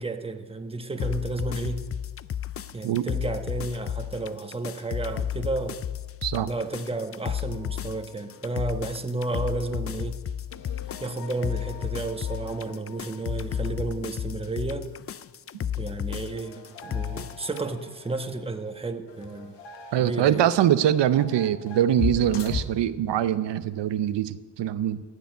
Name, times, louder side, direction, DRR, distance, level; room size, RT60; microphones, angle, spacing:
voice 1, 0.0-1.9 2.7-5.8 6.5-10.2 11.0-14.9 15.8-19.5 20.0-20.4, right 3 dB, 15° right, 6 dB, 1.1 m, -32 dB
sound 1, 1.0-17.7, left 9 dB, 35° left, 0.4 m, -33 dB
sound 2, 7.5-9.0 9.3-9.5 9.8-9.9 10.5-14.5 14.8-14.9 16.2-22.6, left 5 dB, 90° left, 1.4 m, -39 dB
voice 2, 19.9-25.0, right 10 dB, 90° right, 13 dB, 0.7 m, -23 dB
14.5 x 7.0 x 9.5 m, 1.3 s
cardioid pair, 75°, 41 cm